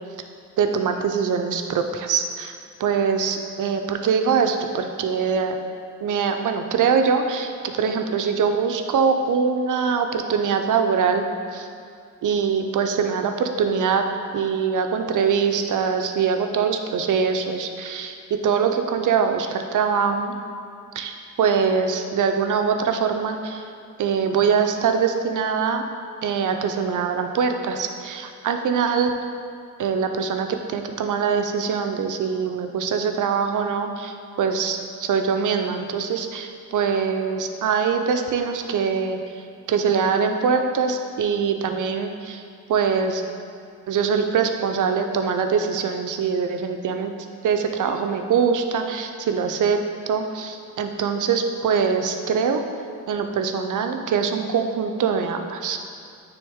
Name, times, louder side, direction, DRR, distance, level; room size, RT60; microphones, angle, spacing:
voice 1, 0.6-2.5 2.8-5.6 6.0-11.3 11.5-11.7 12.2-14.0 14.3-18.2 18.4-20.3 20.9-23.7 24.0-25.8 26.2-29.1 29.8-39.2 39.7-42.4 42.7-43.2 43.9-47.1 47.4-49.8 50.1-52.6 53.1-55.8, right 6 dB, 75° right, 6 dB, 0.6 m, -23 dB
9.1 x 3.6 x 3.6 m, 2.3 s
cardioid pair, 75°, 31 cm